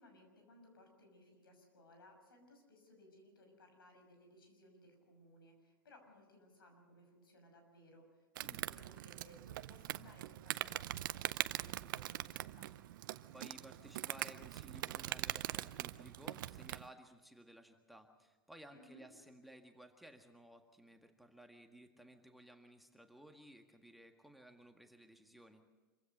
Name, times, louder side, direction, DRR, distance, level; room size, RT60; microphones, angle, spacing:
voice 1, 0.0-12.7 18.7-19.0, left 1 dB, 85° left, 4 dB, 6.3 m, -62 dB
Insect, 8.4-16.9, right 15 dB, 65° right, 0.6 m, -42 dB
voice 2, 13.3-25.6, right 1 dB, ahead, 5 dB, 1.8 m, -58 dB
26.0 x 15.5 x 6.7 m, 1.3 s
hypercardioid pair, 105°, 12 cm